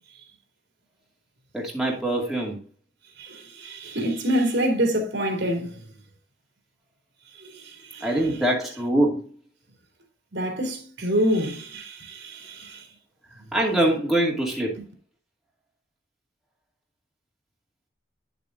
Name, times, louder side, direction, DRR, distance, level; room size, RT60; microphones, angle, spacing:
voice 1, 1.5-2.6 8.0-9.2 13.5-14.8, right 1 dB, ahead, 2.3 m, -23 dB
voice 2, 3.2-5.7 7.4-7.6 7.9-8.1 10.3-12.8, equal, 75° right, 3.2 m, -26 dB
10.5 x 7.0 x 2.6 m
head